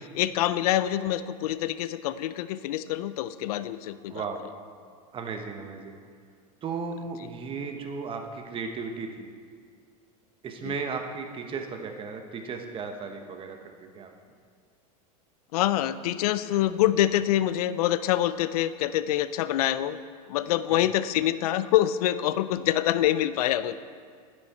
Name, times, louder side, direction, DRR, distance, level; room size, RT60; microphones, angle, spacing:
voice 1, 0.1-4.2 10.6-10.8 15.5-20.0 20.3-23.7, left 12 dB, 75° left, 14 dB, 0.4 m, -25 dB
voice 2, 4.1-4.4 5.1-6.0 6.6-9.3 10.4-14.1, right 5 dB, 30° right, 4 dB, 1.1 m, -35 dB
10.0 x 8.2 x 4.2 m, 2.1 s
supercardioid pair, 115°, 19 cm